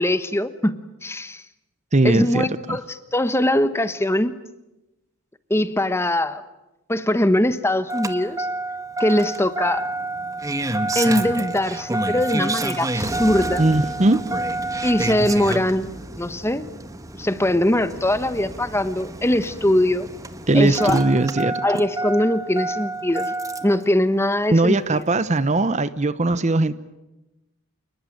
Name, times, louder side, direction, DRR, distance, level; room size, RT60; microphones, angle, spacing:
voice 1, 0.0-1.4 2.0-4.3 5.5-6.4 6.9-8.5 9.0-9.9 10.9-13.6 14.8-16.7 17.2-20.1 20.5-21.0 21.6-23.3 23.6-25.0, left 1 dB, 10° left, 12 dB, 1.1 m, -21 dB
voice 2, 1.9-2.8 13.6-14.2 20.5-21.6 24.5-26.7, right 2 dB, 30° right, 15 dB, 0.9 m, -19 dB
Engine starting, 7.9-23.8 25.1-25.2, right 2 dB, 15° right, 1.3 m, -29 dB
28.5 x 20.0 x 9.3 m, 0.99 s
head